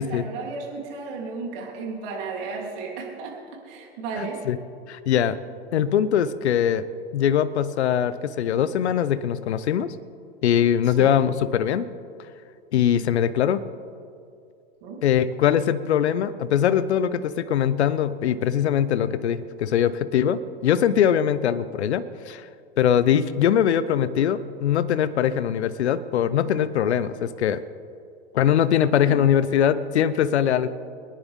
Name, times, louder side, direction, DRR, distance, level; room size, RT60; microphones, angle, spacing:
voice 1, 0.0-3.4 3.6-4.4 10.8-11.2 14.8-15.0 29.1-29.2, right 4 dB, 55° right, -1 dB, 3.3 m, -34 dB
voice 2, 4.2-4.6 4.9-5.4 5.7-6.8 7.1-10.0 10.4-11.8 12.7-13.6 15.0-22.5 22.8-27.6 28.3-30.7, left 9 dB, 80° left, 14 dB, 0.8 m, -22 dB
24.0 x 10.0 x 3.6 m, 2.4 s
hypercardioid pair, 105°, 33 cm